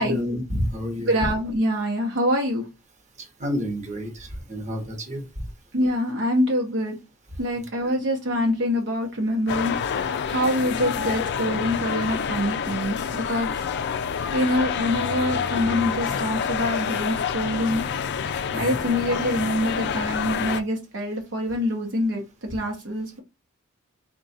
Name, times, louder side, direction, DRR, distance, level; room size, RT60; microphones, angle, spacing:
voice 1, 0.0-1.1 3.2-5.5 18.5-18.8, equal, 35° right, 3 dB, 1.0 m, -30 dB
voice 2, 1.1-2.7 5.7-7.0 7.4-13.7 14.3-17.8 18.6-23.2, equal, 60° right, 2 dB, 0.8 m, -25 dB
sound 1, 9.5-20.6, left 7 dB, 55° left, 0.4 m, -28 dB
3.7 x 2.3 x 4.0 m, 0.26 s
head